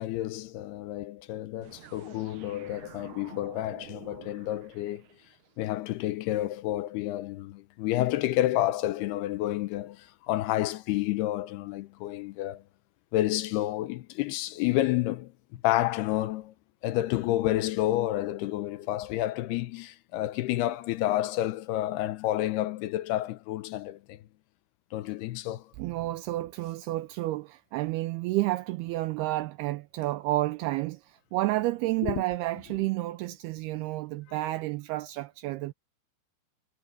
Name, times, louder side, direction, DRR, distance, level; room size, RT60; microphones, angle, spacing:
voice 1, 0.0-5.0 5.6-12.6 13.1-16.5 16.8-24.2 24.9-25.6 32.0-32.2 34.3-34.4, left 15 dB, 80° left, 2.6 m, -30 dB
aika-avaruussiirto-time-space-transfer, 1.6-5.6, right 9 dB, 60° right, 2.3 m, -49 dB
voice 2, 25.8-35.7, right 17 dB, 85° right, 2.4 m, -30 dB
omnidirectional pair, 5.0 m